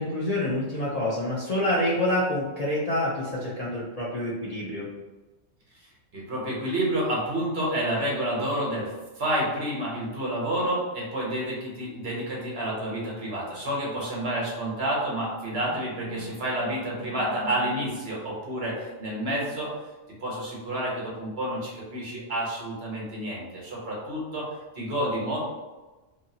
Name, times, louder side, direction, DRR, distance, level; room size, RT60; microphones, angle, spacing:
voice 1, 0.0-4.9, left 1 dB, 50° left, -7 dB, 0.5 m, -27 dB
voice 2, 6.1-19.7 20.2-24.4 24.7-25.4, right 1 dB, 60° right, -5 dB, 1.1 m, -29 dB
2.8 x 2.6 x 2.7 m, 1.2 s
omnidirectional pair, 1.3 m